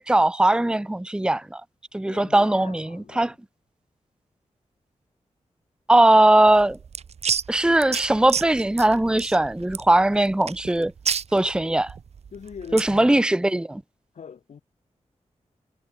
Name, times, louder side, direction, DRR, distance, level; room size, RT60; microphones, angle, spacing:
voice 1, 0.0-1.6 1.9-2.9 3.2-3.3 5.9-6.8 7.5-10.9 11.3-12.0 12.7-13.8, right 1 dB, 5° right, 0.9 m, -19 dB
voice 2, 2.1-3.4 12.3-13.2 14.1-14.6, left 7 dB, 80° left, 3.4 m, -42 dB
sound 1, 6.5-13.0, right 7 dB, 65° right, 1.1 m, -31 dB
wide cardioid pair, 165°, 12 cm